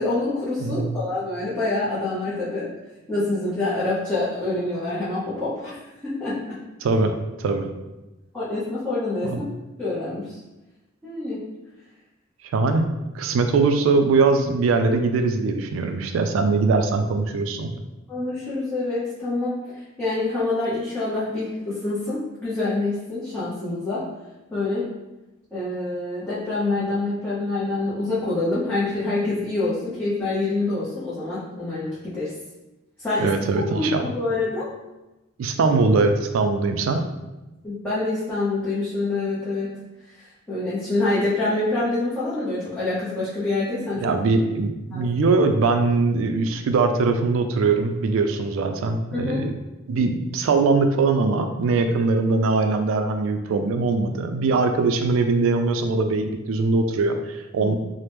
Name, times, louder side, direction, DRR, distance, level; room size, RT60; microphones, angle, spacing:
voice 1, 0.0-2.7 3.1-5.8 6.0-6.6 8.3-9.4 9.8-10.3 11.0-11.4 18.1-19.5 20.0-24.0 24.5-24.9 25.5-32.3 33.0-33.3 33.7-34.7 37.6-39.7 40.5-44.1 44.9-45.1 49.1-49.5 57.6-57.7, left 2 dB, 10° left, -12 dB, 0.7 m, -26 dB
voice 2, 0.6-1.0 6.8-7.1 7.4-7.7 9.3-9.4 12.5-12.9 13.1-17.8 33.2-34.1 35.4-37.0 44.0-49.5 49.9-57.7, right 3 dB, 75° right, 6 dB, 0.3 m, -21 dB
2.9 x 2.0 x 3.3 m, 1.0 s
head